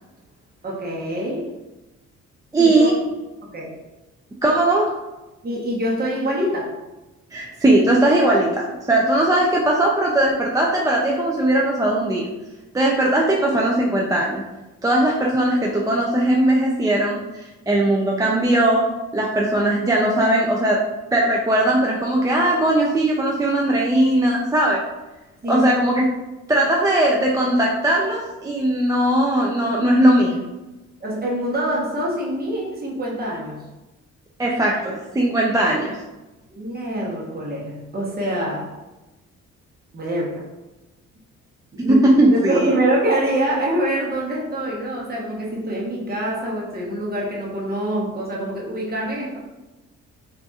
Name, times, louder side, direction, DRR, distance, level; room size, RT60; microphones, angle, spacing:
voice 1, 0.6-1.5 2.6-2.9 3.5-3.8 5.4-6.8 25.4-25.7 31.0-33.7 36.5-38.7 39.9-40.5 41.7-42.0 42.3-49.4, right 1 dB, 30° right, -3 dB, 1.0 m, -25 dB
voice 2, 2.5-3.0 4.4-4.9 7.3-12.3 12.7-14.4 14.8-18.9 19.1-20.8 21.1-24.8 25.5-26.2 26.5-30.5 34.4-36.0 41.9-42.7, right 1 dB, 10° right, -3 dB, 0.4 m, -19 dB
3.9 x 2.6 x 2.3 m, 1.1 s
cardioid pair, 90°, 30 cm